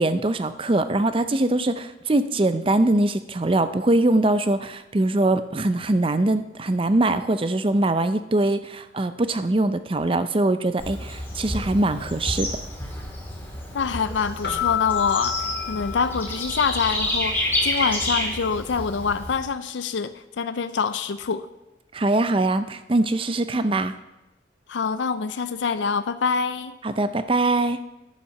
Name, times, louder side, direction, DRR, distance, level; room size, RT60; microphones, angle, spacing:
voice 1, 0.0-12.5 21.9-23.9 26.8-27.8, right 2 dB, 30° right, 11 dB, 0.5 m, -22 dB
Bird / Insect, 10.8-19.4, left 1 dB, 10° left, 2.1 m, -29 dB
voice 2, 13.7-21.5 24.7-26.7, left 5 dB, 90° left, 12 dB, 0.5 m, -26 dB
Keyboard (musical), 14.4-16.8, left 11 dB, 65° left, 1.3 m, -29 dB
11.5 x 7.1 x 5.9 m, 0.96 s
head